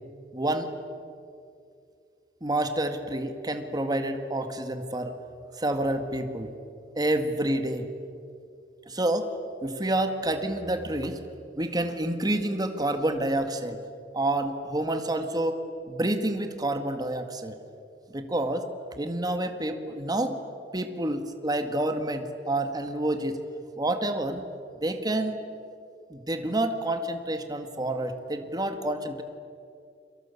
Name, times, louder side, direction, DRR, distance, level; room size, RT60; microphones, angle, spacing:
voice 1, 0.3-0.7 2.4-5.1 5.6-6.5 7.0-7.9 8.9-9.3 9.6-11.2 11.6-13.8 14.1-15.6 15.9-17.6 18.1-18.7 19.0-20.4 20.7-23.4 23.8-24.4 24.8-25.4 26.1-29.2, right 1 dB, 25° right, 6 dB, 1.9 m, -28 dB
30.0 x 23.5 x 8.4 m, 2.5 s
head